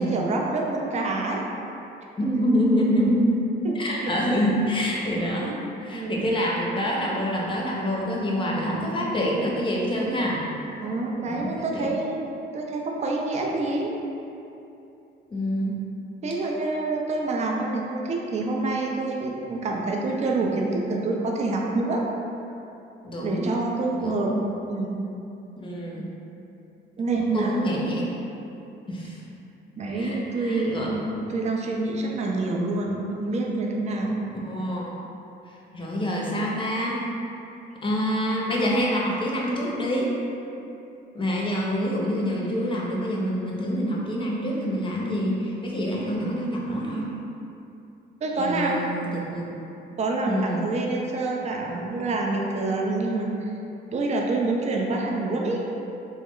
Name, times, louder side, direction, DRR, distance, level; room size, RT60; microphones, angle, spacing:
voice 1, 0.0-1.4 3.6-4.1 5.9-6.4 10.8-12.3 12.5-14.0 16.2-22.0 23.2-24.3 24.6-25.0 27.0-27.6 29.8-31.0 31.3-34.2 48.2-48.7 50.0-53.5 53.9-55.7, right 2 dB, 35° right, 0 dB, 0.4 m, -27 dB
voice 2, 2.2-3.4 3.7-5.5 5.8-10.4 11.2-11.9 15.3-15.8 23.0-23.5 24.0-24.3 25.6-26.1 27.2-28.1 28.9-29.2 29.9-30.9 34.4-34.9 35.5-37.0 37.8-40.1 41.1-47.1 48.4-49.5 50.3-50.6, equal, 25° left, -3 dB, 0.6 m, -26 dB
3.2 x 2.0 x 3.6 m, 2.8 s
cardioid pair, 90°, 20 cm